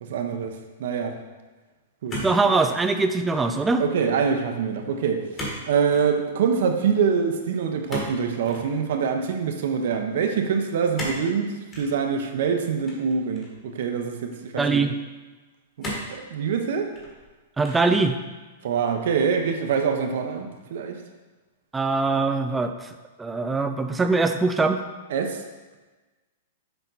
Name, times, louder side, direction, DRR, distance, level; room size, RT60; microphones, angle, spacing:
voice 1, 0.0-1.2 2.0-2.2 3.8-5.2 5.7-14.8 15.8-16.9 18.6-21.0 25.1-25.4, right 6 dB, 60° right, 5 dB, 0.8 m, -25 dB
sound 1, 2.1-2.8 3.2-3.6 5.4-5.6 5.9-6.1 7.9-8.7 10.9-11.3 11.7-11.9 12.8-13.6 14.3-14.4 15.8-16.2 16.8-17.3 17.6-18.0, equal, 20° left, 1.4 m, -34 dB
voice 2, 2.2-3.8 14.6-14.9 17.6-18.2 21.7-22.9 23.2-24.8, right 3 dB, 10° right, 7 dB, 0.4 m, -22 dB
6.8 x 4.4 x 4.0 m, 1.3 s
hypercardioid pair, 160°, 0 cm